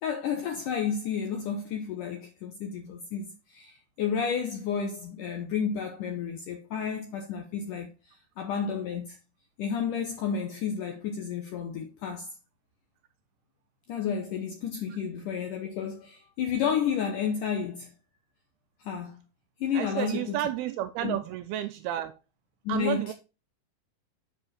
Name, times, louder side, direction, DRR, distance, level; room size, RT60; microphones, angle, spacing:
voice 1, 0.0-7.9 8.4-9.2 9.6-12.3 13.9-17.9 18.8-19.2 19.6-20.4 21.0-21.2 22.7-23.1, left 7 dB, 75° left, 1.9 m, -31 dB
voice 2, 19.7-22.2 22.7-23.1, right 12 dB, 85° right, 2.3 m, -31 dB
7.6 x 6.6 x 4.2 m
omnidirectional pair, 4.9 m